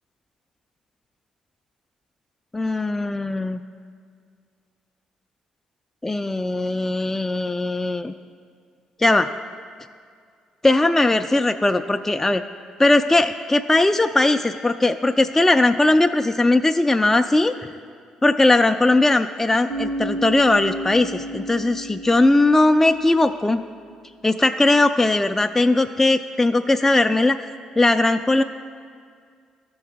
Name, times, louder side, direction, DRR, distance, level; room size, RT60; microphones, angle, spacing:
voice 1, 2.5-3.6 6.0-8.1 9.0-9.3 10.6-12.4 12.8-17.5 18.2-23.6 24.2-27.4 27.8-28.4, left 2 dB, 15° left, 7 dB, 0.3 m, -19 dB
Bass guitar, 19.7-23.5, right 2 dB, 80° right, 0.9 m, -32 dB
13.5 x 4.7 x 3.5 m, 2.1 s
supercardioid pair, 55°, 2 cm